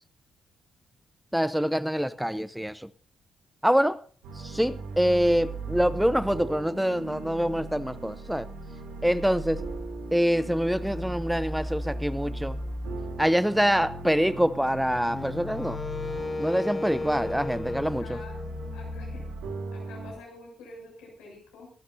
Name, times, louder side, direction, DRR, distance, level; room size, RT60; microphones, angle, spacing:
voice 1, 1.3-2.9 3.6-4.0 4.4-8.5 9.0-9.6 10.1-12.6 13.2-15.8 16.4-18.2, equal, 5° right, 0.7 m, -25 dB
sound 1, 4.2-20.1, right 1 dB, 75° right, 3.2 m, -37 dB
Wind instrument woodwind instrument, 15.1-19.3, left 3 dB, 30° left, 0.6 m, -35 dB
voice 2, 17.4-18.4 18.7-19.3 19.7-21.7, left 3 dB, 75° left, 6.9 m, -47 dB
24.5 x 12.0 x 2.7 m
hypercardioid pair, 40°, 0 cm